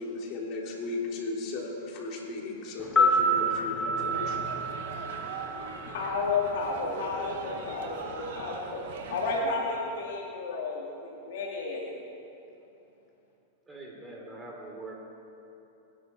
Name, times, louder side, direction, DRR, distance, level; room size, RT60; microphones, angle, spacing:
voice 1, 0.0-5.0, left 3 dB, 45° left, -1 dB, 3.3 m, -36 dB
sound 1, 2.8-7.0 7.2-7.3, equal, 15° left, 1.3 m, -28 dB
sound 2, 4.0-9.4, right 5 dB, 70° right, 2.1 m, -42 dB
voice 2, 5.7-8.8 9.1-11.8, left 3 dB, 70° left, -3 dB, 2.8 m, -32 dB
voice 3, 13.7-14.9, right 2 dB, 15° right, -1 dB, 3.6 m, -43 dB
24.5 x 10.5 x 4.7 m, 2.9 s
hypercardioid pair, 130°, 0 cm